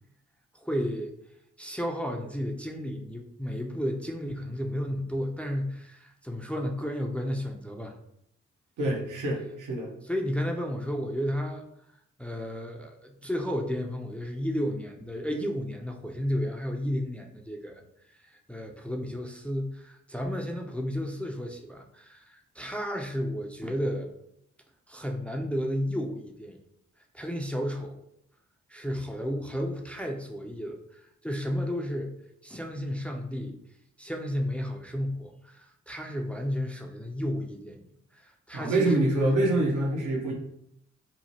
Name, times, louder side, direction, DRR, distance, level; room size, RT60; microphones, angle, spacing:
voice 1, 0.6-1.1 1.6-7.9 8.8-9.0 10.0-11.6 12.2-17.8 18.3-24.1 24.9-26.6 27.1-28.0 28.7-32.1 32.4-33.6 34.0-37.9 38.2-39.4, equal, 5° left, 2 dB, 0.4 m, -32 dB
voice 2, 8.8-9.9 38.5-40.3, right 2 dB, 80° right, 0 dB, 0.7 m, -26 dB
3.0 x 2.1 x 2.7 m, 0.75 s
supercardioid pair, 40°, 30 cm